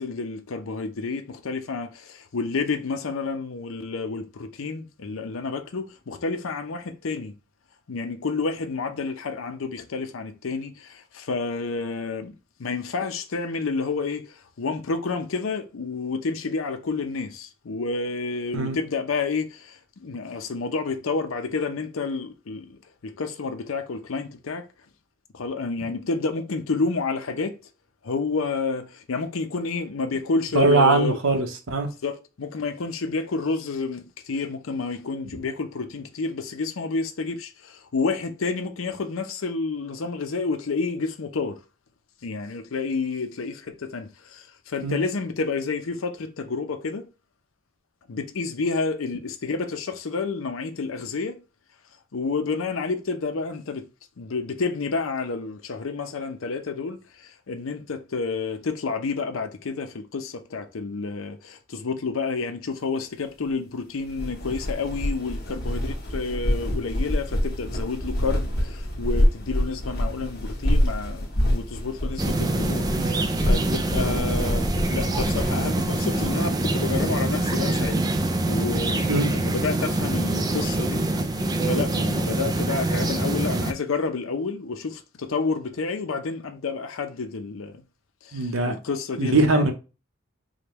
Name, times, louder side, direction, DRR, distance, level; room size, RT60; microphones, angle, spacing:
voice 1, 0.0-7.3 7.9-12.3 12.6-14.3 14.6-22.8 23.0-24.6 25.3-27.5 28.0-31.2 32.0-41.6 42.2-47.1 48.1-51.4 52.1-53.8 54.2-57.0 57.5-78.0 78.5-81.0 81.6-87.7 88.2-89.7, left 4 dB, 80° left, 0.6 m, -29 dB
voice 2, 30.5-31.9 44.8-45.0 73.0-73.1 79.1-79.3 88.3-88.8 89.2-89.7, right 3 dB, 75° right, 0.8 m, -21 dB
sound 1, 64.0-78.2, equal, 50° left, 1.3 m, -27 dB
sound 2, 72.2-83.7, right 2 dB, 20° right, 0.3 m, -25 dB
5.0 x 2.2 x 3.0 m
head